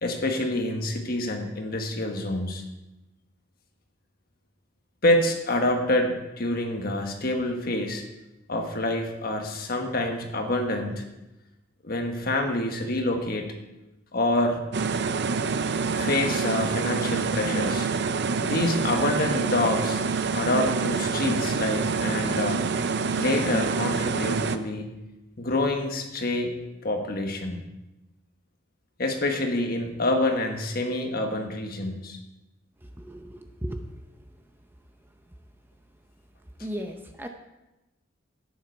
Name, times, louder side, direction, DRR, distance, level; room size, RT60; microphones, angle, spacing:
voice 1, 0.0-2.6 5.0-8.0 8.5-11.0 11.8-13.5 14.1-14.6 15.9-17.9 18.4-20.0 20.3-22.6 23.2-24.9 25.4-26.5 26.8-27.6 29.0-32.2, left 1 dB, 50° left, 4 dB, 1.4 m, -27 dB
sound 1, 14.7-24.6, right 5 dB, 60° right, 0.6 m, -26 dB
voice 2, 33.0-33.8 36.6-37.3, equal, 10° right, 5 dB, 0.6 m, -35 dB
11.0 x 9.5 x 4.6 m, 0.99 s
head